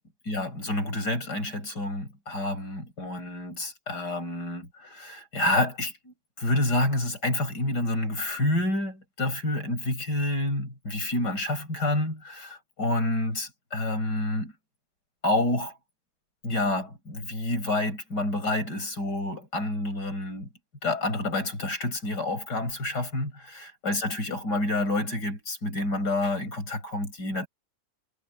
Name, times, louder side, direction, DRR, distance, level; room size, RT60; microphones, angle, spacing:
voice 1, 0.3-14.5 15.2-15.8 16.4-20.5 20.8-27.5, left 1 dB, 85° left, 6.9 m, -28 dB
omnidirectional pair, 1.8 m